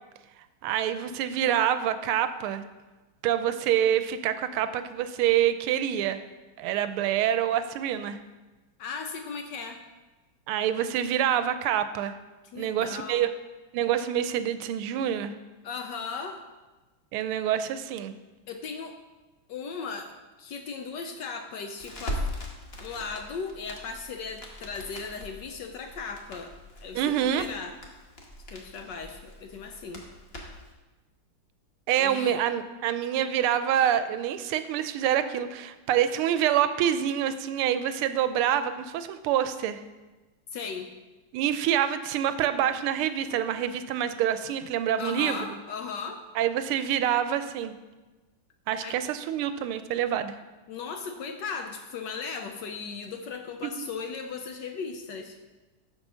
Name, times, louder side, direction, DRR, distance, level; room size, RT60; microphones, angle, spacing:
voice 1, 0.6-2.6 3.2-6.2 6.6-8.2 10.5-12.2 12.5-13.3 13.7-15.3 17.1-18.1 26.9-27.4 31.9-39.8 41.3-45.4 46.4-47.7 48.7-50.3 53.6-53.9, right 10 dB, 80° right, 11 dB, 1.4 m, -26 dB
voice 2, 8.8-9.8 12.4-13.3 15.6-16.4 18.5-19.0 19.5-22.2 22.8-26.5 26.8-27.7 28.5-30.0 32.0-32.4 40.5-40.9 45.0-46.2 48.8-49.0 50.7-55.4, left 5 dB, 70° left, 5 dB, 1.1 m, -37 dB
Crackle, 21.8-30.7, left 1 dB, 35° left, 1.2 m, -40 dB
7.5 x 6.6 x 6.2 m, 1.2 s
omnidirectional pair, 2.4 m